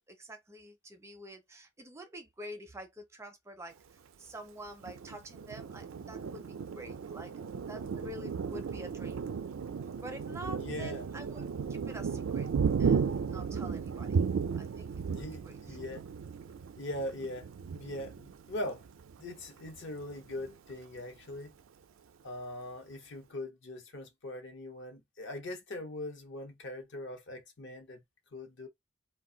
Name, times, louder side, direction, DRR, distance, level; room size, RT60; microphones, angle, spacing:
voice 1, 0.0-7.3 7.7-9.3 10.0-12.5 12.8-14.2 14.6-15.8, equal, 15° right, 0.4 m, -47 dB
Thunder, 4.8-19.2 19.7-19.8 20.1-20.7, right 6 dB, 75° right, 0.4 m, -35 dB
voice 2, 10.5-11.1 15.1-16.0 16.8-18.9 19.2-21.5 22.2-28.0 28.3-28.7, left 1 dB, 60° left, 0.8 m, -41 dB
2.4 x 2.2 x 3.7 m
head